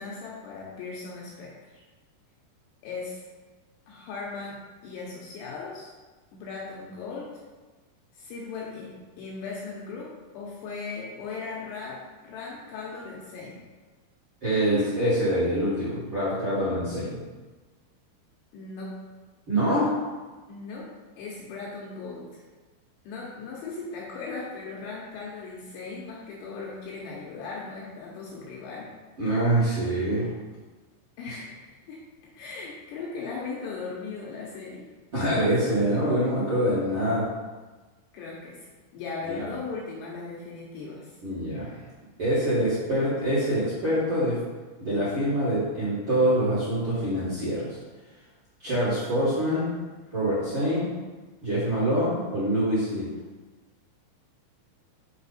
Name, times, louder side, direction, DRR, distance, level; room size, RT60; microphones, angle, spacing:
voice 1, 0.0-1.8 2.8-3.2 3.9-5.9 6.3-7.4 8.1-13.6 18.5-19.0 20.5-22.4 23.0-28.9 31.2-32.1 32.3-34.9 38.1-38.7 38.9-41.1, left 4 dB, 75° left, -4 dB, 2.7 m, -38 dB
voice 2, 14.4-17.2 19.5-19.9 29.2-30.3 31.2-31.4 35.1-37.3 39.3-39.5 41.2-41.8 42.2-44.4 44.8-47.8 48.6-49.7 50.1-50.9 51.4-53.1, right 1 dB, 45° right, -12 dB, 1.8 m, -25 dB
7.0 x 4.7 x 4.2 m, 1.3 s
omnidirectional pair, 5.6 m